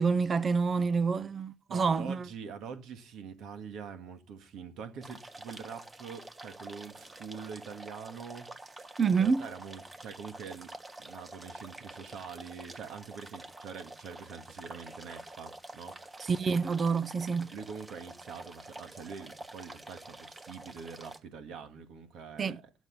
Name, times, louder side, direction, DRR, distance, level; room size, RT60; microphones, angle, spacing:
voice 1, 0.0-2.3 9.0-9.5 16.3-17.5 22.4-22.6, right 5 dB, 45° right, 0.6 m, -27 dB
voice 2, 1.7-8.9 9.2-10.7 11.0-16.0 17.5-22.9, right 6 dB, 85° right, 1.8 m, -45 dB
sound 1, 5.0-21.2, right 2 dB, 20° right, 1.3 m, -48 dB
11.0 x 7.2 x 5.5 m
cardioid pair, 90°, 0 cm